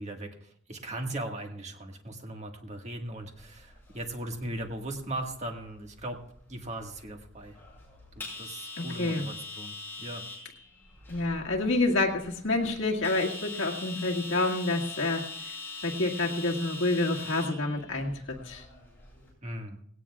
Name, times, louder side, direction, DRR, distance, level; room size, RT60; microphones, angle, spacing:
voice 1, 0.0-6.2 6.5-7.6 8.1-10.2 19.4-19.8, right 1 dB, 30° right, 2 dB, 1.7 m, -38 dB
sound 1, 3.2-19.3, left 3 dB, 10° left, 5.4 m, -43 dB
voice 2, 8.8-9.3 11.1-15.3 15.8-18.6, left 2 dB, 60° left, 0 dB, 2.0 m, -28 dB
19.0 x 17.0 x 2.4 m, 0.65 s
head